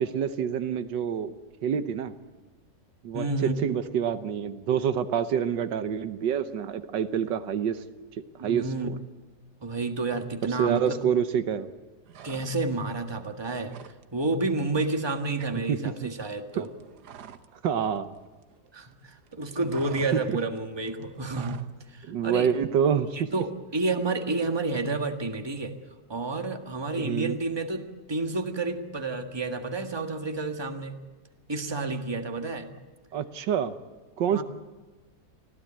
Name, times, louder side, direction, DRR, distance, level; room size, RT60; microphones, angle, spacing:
voice 1, 0.0-1.3 1.6-2.1 3.0-7.8 8.4-9.0 10.6-11.7 15.7-16.1 16.6-16.7 17.6-18.1 20.1-20.4 22.0-23.3 27.0-27.4 33.1-33.7 34.2-34.4, right 8 dB, 85° right, 10 dB, 1.6 m, -27 dB
voice 2, 3.1-3.6 8.4-8.9 9.6-11.0 12.2-13.7 14.1-16.7 18.7-21.6 21.9-22.5 23.1-25.7 26.1-31.0 31.5-32.7 34.3-34.4, right 3 dB, 15° right, 5 dB, 1.6 m, -30 dB
sound 1, 12.1-12.9 13.2-14.0 14.3-14.5 14.8-17.6 17.8-18.9 19.2-21.8, right 8 dB, 65° right, 1.5 m, -47 dB
25.0 x 16.0 x 8.7 m, 1.3 s
omnidirectional pair, 1.9 m